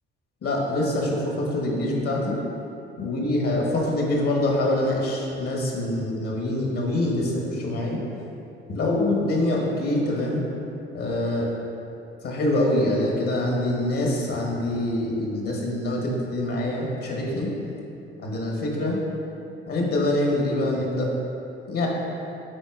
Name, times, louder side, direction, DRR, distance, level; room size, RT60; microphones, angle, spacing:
voice 1, 0.4-2.4 3.0-8.0 8.7-10.4 10.9-11.5 12.2-17.5 18.2-19.0 19.7-21.1 21.7-21.9, left 1 dB, 55° left, -2 dB, 1.3 m, -25 dB
9.5 x 4.0 x 2.5 m, 2.8 s
hypercardioid pair, 45°, 29 cm